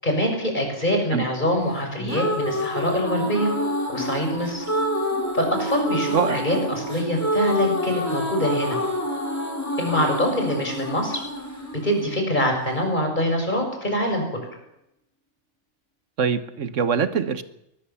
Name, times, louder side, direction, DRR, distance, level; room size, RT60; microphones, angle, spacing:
voice 1, 0.0-3.5 3.9-4.7 5.3-8.8 9.8-11.2 11.8-14.4, equal, 35° left, 3 dB, 6.3 m, -24 dB
sound 1, 1.8-12.8, equal, 10° left, 3.5 m, -27 dB
voice 2, 16.2-17.4, right 6 dB, 75° right, 12 dB, 1.6 m, -23 dB
22.5 x 20.5 x 7.1 m, 0.84 s
omnidirectional pair, 1.3 m